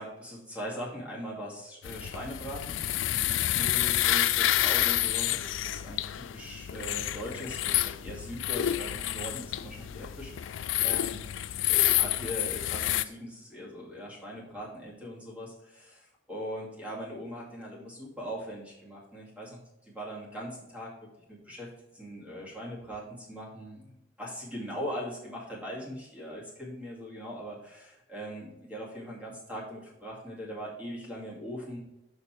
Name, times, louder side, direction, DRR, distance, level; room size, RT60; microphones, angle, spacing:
voice 1, 0.0-6.0 6.3-11.2 11.9-20.9 21.3-31.8, equal, 5° right, -4 dB, 2.2 m, -40 dB
voice bird, 1.8-13.0, left 13 dB, 80° left, 0.4 m, -29 dB
6.8 x 5.4 x 4.5 m, 0.88 s
head